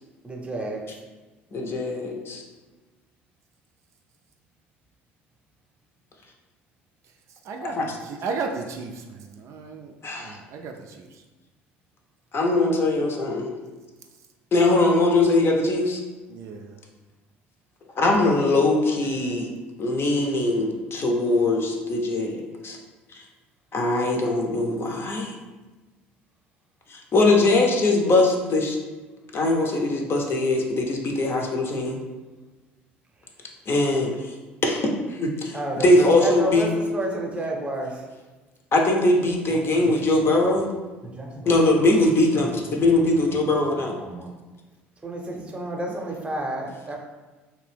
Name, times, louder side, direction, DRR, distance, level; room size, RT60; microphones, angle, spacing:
voice 1, 0.2-0.8 35.5-38.0 39.5-40.6 41.0-41.7 42.3-42.4 43.0-43.6 44.0-44.3 45.0-47.0, right 1 dB, 20° right, 0 dB, 0.7 m, -31 dB
voice 2, 1.5-2.4 7.6-8.0 10.0-10.4 12.3-13.6 14.5-16.0 18.0-19.5 19.8-22.8 23.7-25.3 26.9-28.8 29.3-32.0 33.7-34.3 34.6-36.7 38.7-40.7 41.5-42.5 42.8-43.9, left 2 dB, 40° left, 0 dB, 0.6 m, -21 dB
voice 3, 7.4-11.2 16.3-16.8, right 4 dB, 55° right, 3 dB, 0.3 m, -35 dB
2.8 x 2.5 x 3.3 m, 1.2 s
hypercardioid pair, 65°, 6 cm